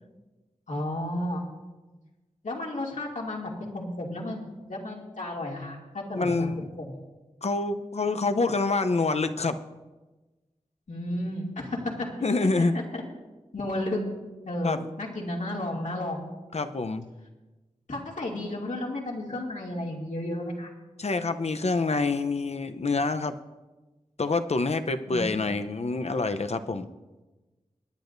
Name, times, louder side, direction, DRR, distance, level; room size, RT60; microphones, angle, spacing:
voice 1, 0.7-1.4 2.4-7.0 10.9-12.1 12.4-13.0 13.5-14.0 14.4-16.3 17.9-20.7 25.1-25.5, left 1 dB, 70° left, -2 dB, 2.5 m, -33 dB
voice 2, 6.1-6.7 7.4-9.6 12.2-12.7 14.6-14.9 16.5-17.1 21.0-23.4 24.2-26.9, left 3 dB, 55° left, 9 dB, 0.7 m, -26 dB
24.5 x 10.0 x 2.7 m, 1.2 s
wide cardioid pair, 60°, 13 cm